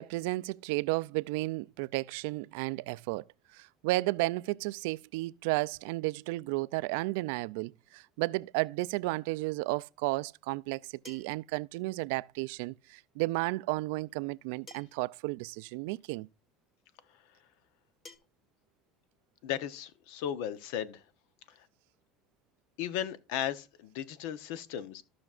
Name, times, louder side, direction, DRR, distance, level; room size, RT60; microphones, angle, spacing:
voice 1, 0.0-3.2 3.5-16.3, right 22 dB, 80° right, 0.3 m, -33 dB
sound 1, 11.0-11.5 13.0-13.1 14.7-15.1 16.3-16.4 18.0-18.2, left 4 dB, 30° left, 1.3 m, -52 dB
voice 2, 19.4-21.0 21.5-21.7 22.8-25.0, left 10 dB, 75° left, 0.8 m, -36 dB
14.5 x 5.9 x 2.4 m
cardioid pair, 135°, 0 cm